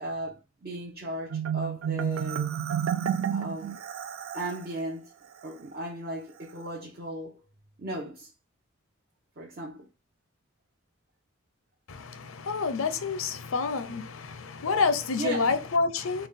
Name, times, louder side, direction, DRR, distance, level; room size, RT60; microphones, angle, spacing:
voice 1, 0.0-2.5 3.3-3.8 4.3-5.0 5.4-7.4 7.8-8.3 9.4-9.9 15.2-15.5, right 1 dB, 45° right, 0.8 m, -36 dB
Marimba xylophone, 1.3-4.7, right 9 dB, 75° right, 0.4 m, -30 dB
voice 2, 11.9-16.3, left 4 dB, 80° left, 0.6 m, -28 dB
3.9 x 2.3 x 3.5 m
head